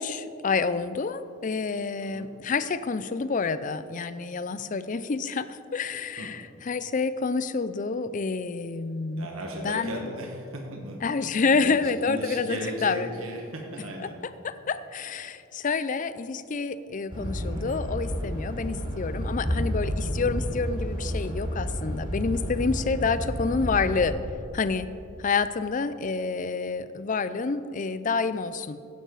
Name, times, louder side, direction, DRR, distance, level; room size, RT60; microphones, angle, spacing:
voice 1, 0.0-9.3 9.6-10.0 11.0-13.1 14.4-24.2 24.5-24.9 25.2-28.8, left 4 dB, 40° left, 13 dB, 0.5 m, -28 dB
voice 2, 9.1-11.8 12.0-14.2, equal, 85° right, 1 dB, 1.7 m, -36 dB
sound 1, 17.1-24.1, equal, 25° right, 2.2 m, -31 dB
15.5 x 10.5 x 4.0 m, 2.6 s
head